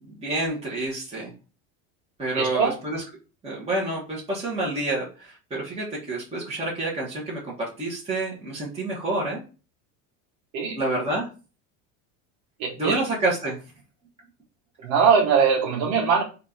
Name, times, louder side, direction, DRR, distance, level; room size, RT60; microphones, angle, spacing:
voice 1, 0.0-1.3 2.2-3.0 3.4-9.4 10.7-11.3 12.8-13.6, right 2 dB, 15° right, -5 dB, 1.5 m, -28 dB
voice 2, 2.3-2.7 10.5-10.8 12.6-13.0 14.8-16.2, right 6 dB, 80° right, -1 dB, 1.1 m, -21 dB
4.3 x 2.8 x 3.8 m, 0.33 s
supercardioid pair, 130°, 39 cm